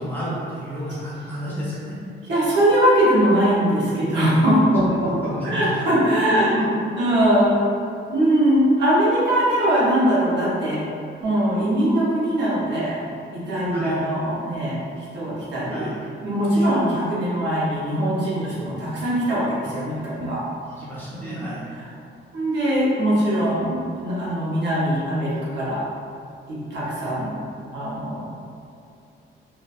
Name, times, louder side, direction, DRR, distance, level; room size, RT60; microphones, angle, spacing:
voice 1, 0.0-1.9 4.8-5.8 6.3-6.6 13.7-14.0 15.7-16.0 20.8-21.6, equal, 10° left, -10 dB, 0.8 m, -31 dB
voice 2, 2.3-6.5 7.0-7.8 8.1-10.8 11.2-13.0 13.3-15.9 16.2-20.4 21.1-21.9 22.3-25.8 26.5-27.4 27.7-28.3, right 1 dB, 65° right, -8 dB, 0.8 m, -21 dB
2.5 x 2.3 x 2.3 m, 2.4 s
cardioid pair, 115°, 20 cm